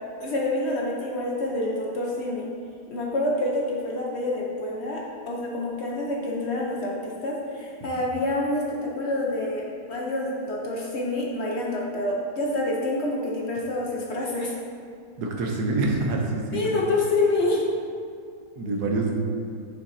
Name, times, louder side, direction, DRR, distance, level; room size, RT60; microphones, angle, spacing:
voice 1, 0.2-2.5 2.9-9.6 9.9-14.5 16.5-17.7, left 2 dB, 55° left, -3 dB, 0.7 m, -27 dB
voice 2, 15.2-16.6 18.6-19.1, right 2 dB, 65° right, 0 dB, 1.3 m, -26 dB
6.9 x 5.8 x 2.7 m, 2.3 s
omnidirectional pair, 1.9 m